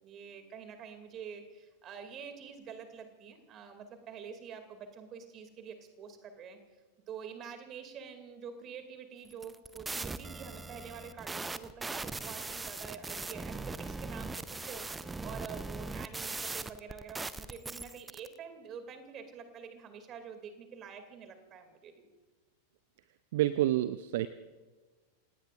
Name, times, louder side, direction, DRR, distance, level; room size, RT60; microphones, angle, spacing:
voice 1, 0.0-6.6 7.1-22.1, right 7 dB, 30° right, 7 dB, 2.7 m, -47 dB
sound 1, 9.3-18.3, right 3 dB, 10° right, 0.7 m, -40 dB
voice 2, 23.3-24.3, right 14 dB, 55° right, 14 dB, 0.6 m, -28 dB
28.5 x 18.0 x 2.6 m, 1.3 s
figure-of-eight pair, 90°, 0 cm